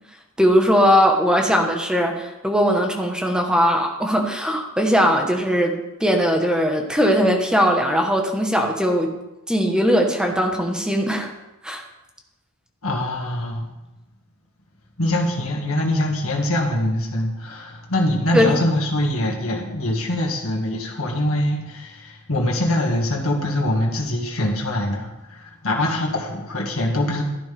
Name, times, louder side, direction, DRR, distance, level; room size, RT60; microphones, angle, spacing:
voice 1, 0.4-9.1 9.5-11.3 11.6-11.8 18.3-18.5, equal, 5° right, 2 dB, 1.2 m, -19 dB
voice 2, 12.8-13.6 15.0-27.2, left 1 dB, 70° left, 0 dB, 2.0 m, -23 dB
12.0 x 10.5 x 3.5 m, 0.99 s
head